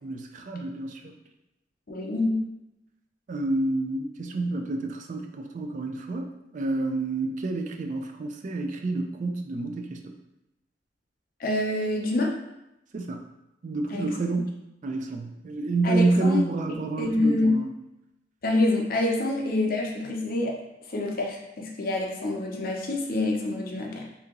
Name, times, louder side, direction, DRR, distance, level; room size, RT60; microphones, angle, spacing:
voice 1, 0.0-1.1 3.3-6.3 6.5-10.1 12.9-13.2 13.6-17.7, right 2 dB, 45° right, 4 dB, 0.3 m, -28 dB
voice 2, 1.9-2.4 11.4-12.3 13.9-14.1 15.8-16.4 17.0-17.5 18.4-20.6 20.9-24.0, left 2 dB, 55° left, 0 dB, 0.6 m, -26 dB
2.8 x 2.8 x 3.6 m, 0.91 s
head